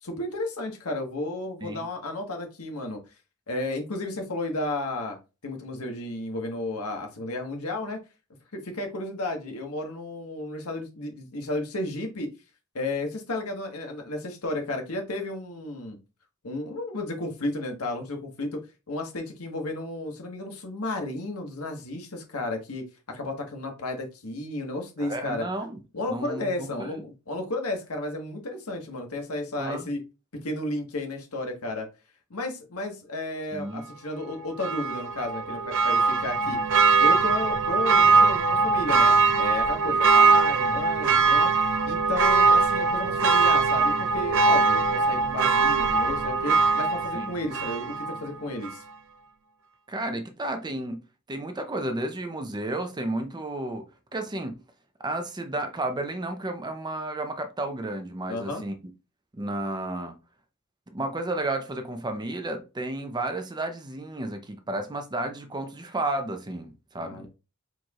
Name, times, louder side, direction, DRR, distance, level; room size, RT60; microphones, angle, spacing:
voice 1, 0.0-3.0 3.5-5.2 5.4-8.0 8.5-12.3 12.7-16.0 16.4-18.6 18.9-25.5 25.9-30.0 30.4-31.9 32.3-36.6 37.0-41.5 41.8-48.8 58.3-58.6 67.0-67.3, left 2 dB, 75° left, 1.4 m, -33 dB
voice 2, 25.0-25.8 26.1-26.9 29.6-29.9 33.5-33.9 47.1-47.3 49.9-51.0 51.3-53.9 54.1-54.6 55.0-58.8 59.3-60.1 60.9-67.3, right 2 dB, 20° right, 0.6 m, -32 dB
Church bell, 34.6-48.3 48.6-48.7, right 4 dB, 60° right, 0.6 m, -21 dB
4.6 x 4.4 x 2.4 m
head